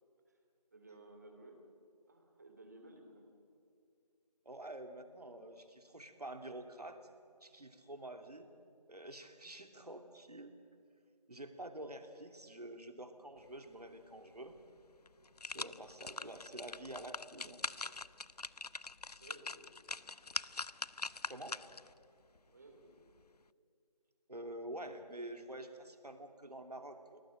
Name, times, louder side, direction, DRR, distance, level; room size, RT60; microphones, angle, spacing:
voice 1, 0.7-1.6 2.1-3.3 19.1-19.7 22.5-23.1, right 2 dB, 25° right, 4 dB, 2.6 m, -57 dB
voice 2, 4.4-7.0 7.4-8.5 8.9-10.6 11.3-14.5 15.4-17.6 21.3-21.6 24.3-27.2, right 1 dB, 70° right, 7 dB, 2.8 m, -48 dB
sound 1, 14.5-14.6 15.1-21.9 22.4-22.5, left 3 dB, 75° left, 0.7 m, -43 dB
28.5 x 18.5 x 7.8 m, 2.4 s
figure-of-eight pair, 170°, 21 cm